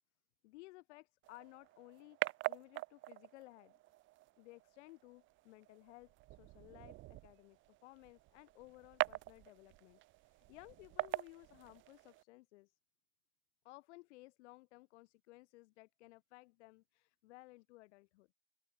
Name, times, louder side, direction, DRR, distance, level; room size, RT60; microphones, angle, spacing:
voice 1, 0.4-3.8 4.4-12.8 13.6-18.3, left 21 dB, 65° left, 4.9 m, -58 dB
sound 1, 1.2-12.2, right 18 dB, 30° right, 0.9 m, -44 dB
open air
supercardioid pair, 155°, 36 cm